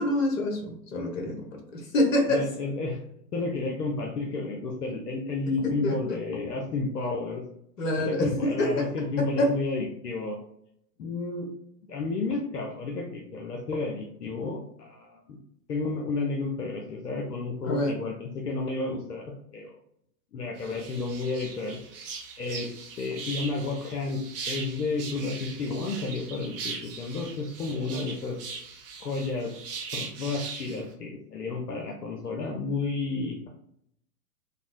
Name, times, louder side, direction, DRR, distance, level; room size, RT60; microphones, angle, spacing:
voice 1, 0.0-2.5 5.8-6.2 7.8-8.7 9.4-9.5 17.6-17.9, left 1 dB, 55° left, 2 dB, 1.0 m, -26 dB
voice 2, 2.3-3.0 3.3-7.4 8.0-10.4 11.0-11.5 11.9-15.4 15.7-19.2 19.5-19.7 20.3-21.8 22.4-22.7 23.0-24.2 24.5-28.4 29.0-29.5 29.9-33.5, left 3 dB, 75° left, -1 dB, 0.7 m, -31 dB
sound 1, 20.6-30.8, right 5 dB, 40° right, 0.6 m, -40 dB
3.4 x 2.0 x 2.5 m, 0.74 s
figure-of-eight pair, 105°, 47 cm